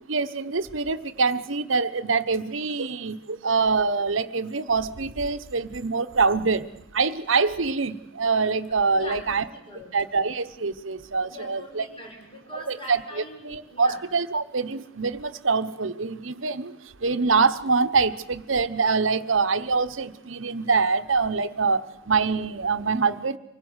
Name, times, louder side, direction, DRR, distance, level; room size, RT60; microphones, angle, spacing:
voice 1, 0.1-9.4 9.9-11.8 12.5-23.4, right 4 dB, 70° right, 12 dB, 1.1 m, -25 dB
voice 2, 8.9-9.9 11.2-14.0, equal, 25° left, 1 dB, 6.4 m, -42 dB
25.0 x 16.5 x 8.1 m, 0.85 s
head